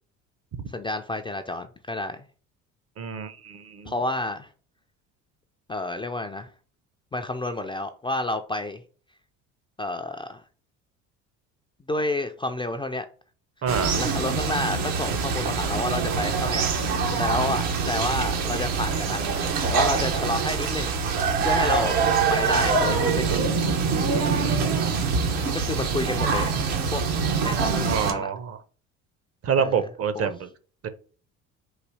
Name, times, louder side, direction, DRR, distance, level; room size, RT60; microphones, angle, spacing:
voice 1, 0.7-2.3 3.9-4.5 5.7-6.5 7.1-8.8 9.8-10.4 11.9-13.1 14.0-16.6 17.2-19.3 19.7-20.9 21.4-22.0 22.3-23.5 25.5-27.0 27.4-28.3 29.6-29.7 30.1-30.3, left 2 dB, 15° left, 0.4 m, -30 dB
voice 2, 3.0-3.9 13.6-14.0 24.0-25.0 27.9-28.6 29.4-30.5 30.8-30.9, right 6 dB, 40° right, 0.7 m, -28 dB
sound 1, 13.7-28.1, right 5 dB, 75° right, 1.1 m, -24 dB
4.1 x 2.7 x 4.7 m
hypercardioid pair, 70°, 36 cm